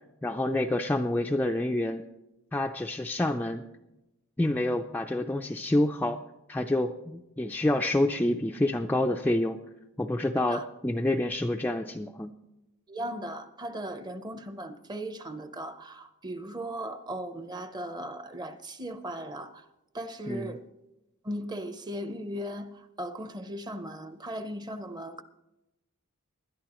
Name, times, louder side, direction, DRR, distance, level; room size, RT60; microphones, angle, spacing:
voice 1, 0.2-2.0 2.5-3.6 4.4-6.2 6.5-9.6 10.0-12.3 20.3-20.5, left 1 dB, 10° left, 0.3 m, -28 dB
voice 2, 12.9-19.7 19.9-20.6 21.2-25.2, right 1 dB, 20° right, 0.7 m, -37 dB
20.5 x 11.5 x 3.0 m
head